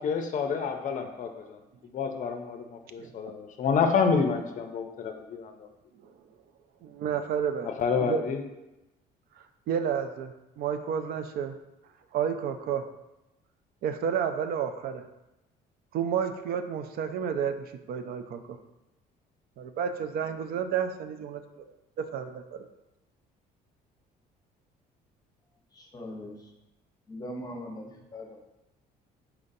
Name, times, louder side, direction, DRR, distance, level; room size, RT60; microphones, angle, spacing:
voice 1, 0.0-5.7 7.7-8.4, left 5 dB, 50° left, 5 dB, 0.5 m, -29 dB
voice 2, 3.0-3.3 6.0-6.1 6.8-7.7 8.0-8.2 9.7-11.6 12.1-12.9 13.8-15.0 15.9-18.6 19.6-21.7 22.0-22.6, right 7 dB, 65° right, 8 dB, 0.4 m, -31 dB
voice 3, 25.7-26.3 27.1-28.4, left 1 dB, 20° left, 1 dB, 0.8 m, -40 dB
4.4 x 3.8 x 2.6 m, 0.94 s
cardioid pair, 110°, 17 cm